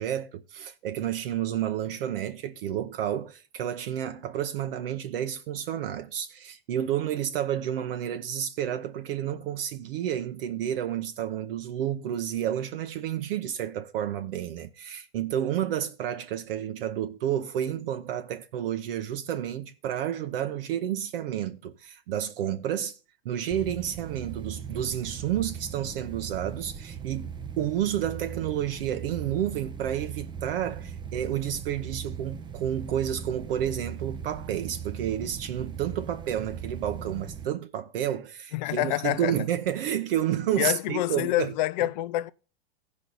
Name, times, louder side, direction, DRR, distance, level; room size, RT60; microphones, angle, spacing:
voice 1, 0.0-23.0 23.2-27.3 27.6-41.5, right 10 dB, 65° right, 0.8 m, -30 dB
sound 1, 23.5-37.5, right 7 dB, 15° right, 0.5 m, -39 dB
voice 2, 38.5-39.3 40.6-42.3, left 15 dB, 50° left, 0.5 m, -27 dB
15.5 x 5.2 x 4.0 m
hypercardioid pair, 125°, 30 cm